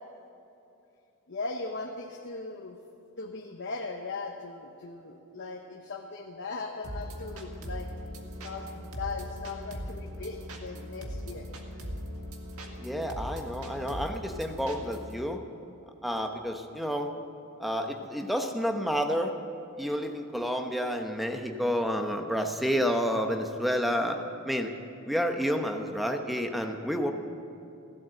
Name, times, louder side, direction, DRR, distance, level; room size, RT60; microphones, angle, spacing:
voice 1, 1.3-2.8 3.2-7.9 8.4-11.5, left 3 dB, 55° left, 2 dB, 1.0 m, -38 dB
sound 1, 6.8-15.2, equal, 85° right, 1.8 m, -40 dB
voice 2, 12.8-15.4 16.0-17.1 17.6-19.3 19.8-24.7 25.1-27.1, equal, ahead, 4 dB, 0.9 m, -30 dB
16.0 x 11.5 x 7.8 m, 2.7 s
head